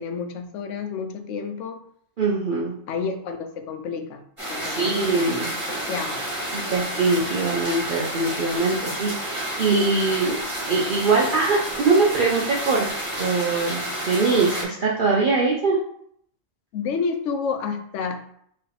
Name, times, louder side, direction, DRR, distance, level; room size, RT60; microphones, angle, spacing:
voice 1, 0.0-1.8 2.9-4.2 4.5-5.3 5.7-6.3 16.7-18.2, left 5 dB, 75° left, 6 dB, 0.9 m, -30 dB
voice 2, 2.2-2.7 4.6-5.8 6.5-12.9 13.2-15.8, right 3 dB, 50° right, -3 dB, 0.7 m, -22 dB
sound 1, 4.4-14.6, right 1 dB, 25° right, 1.9 m, -30 dB
4.5 x 3.2 x 3.4 m, 0.67 s
omnidirectional pair, 1.3 m